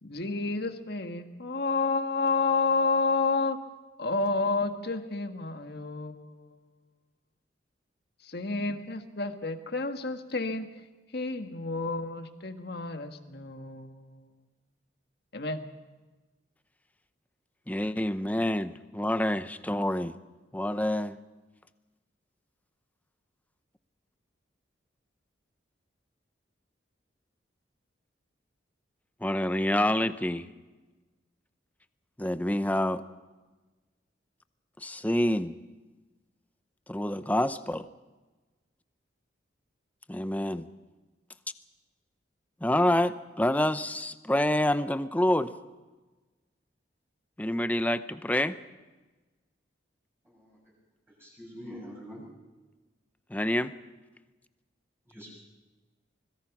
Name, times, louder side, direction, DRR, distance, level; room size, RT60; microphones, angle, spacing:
voice 1, 0.0-3.6 4.0-6.6 8.2-10.7 11.1-14.3 15.3-15.6, left 3 dB, 55° left, 7 dB, 1.6 m, -30 dB
voice 2, 17.7-20.1 20.5-21.2 29.2-30.5 32.2-33.0 34.8-35.5 36.9-37.9 40.1-40.7 42.6-45.5 47.4-48.6 53.3-53.7, left 1 dB, 10° left, 12 dB, 0.7 m, -27 dB
voice 3, 51.2-52.2 55.1-55.3, equal, 15° right, -4 dB, 6.9 m, -43 dB
25.5 x 21.0 x 6.0 m, 1.2 s
head